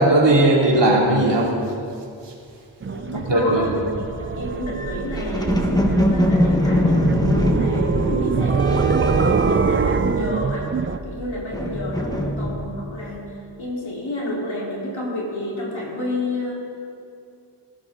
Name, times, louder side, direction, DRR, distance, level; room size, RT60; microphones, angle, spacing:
voice 1, 0.0-1.5 2.2-2.3 3.1-3.7, right 1 dB, 60° right, -2 dB, 2.9 m, -17 dB
voice 2, 2.8-3.7 4.0-10.7 11.0-13.3 13.6-16.5, left 1 dB, 75° left, -5 dB, 4.2 m, -30 dB
sound 1, 2.8-11.0, right 5 dB, 30° right, 0.4 m, -24 dB
sound 2, 4.7-10.3 10.6-12.9, left 1 dB, 10° left, 1.5 m, -23 dB
19.0 x 12.0 x 3.9 m, 2.5 s
wide cardioid pair, 75°, 47 cm